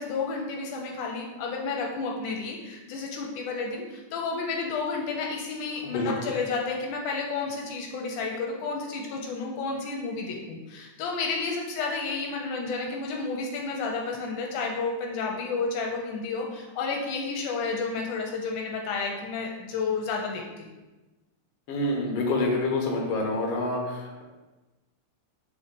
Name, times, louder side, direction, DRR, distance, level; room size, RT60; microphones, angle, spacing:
voice 1, 0.0-20.7, left 4 dB, 80° left, 0 dB, 2.1 m, -31 dB
voice 2, 21.7-24.2, left 2 dB, 60° left, -1 dB, 1.9 m, -27 dB
4.5 x 4.2 x 5.2 m, 1.2 s
omnidirectional pair, 3.5 m